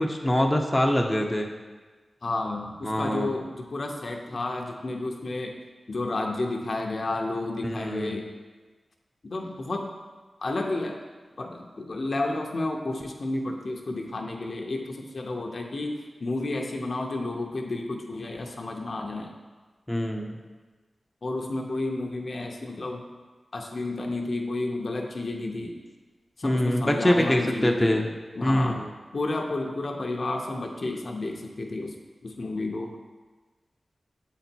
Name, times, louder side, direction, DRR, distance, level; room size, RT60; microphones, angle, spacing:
voice 1, 0.0-1.5 2.8-3.3 7.6-8.2 19.9-20.4 26.4-28.0 28.4-28.9, left 1 dB, 15° left, 1 dB, 0.6 m, -24 dB
voice 2, 2.2-5.6 5.9-8.3 9.2-9.9 10.4-11.0 11.4-19.3 21.2-23.1 23.5-25.8 26.4-31.9 32.2-33.0, left 2 dB, 60° left, 2 dB, 0.7 m, -31 dB
7.6 x 4.1 x 4.4 m, 1.3 s
wide cardioid pair, 75°, 0 cm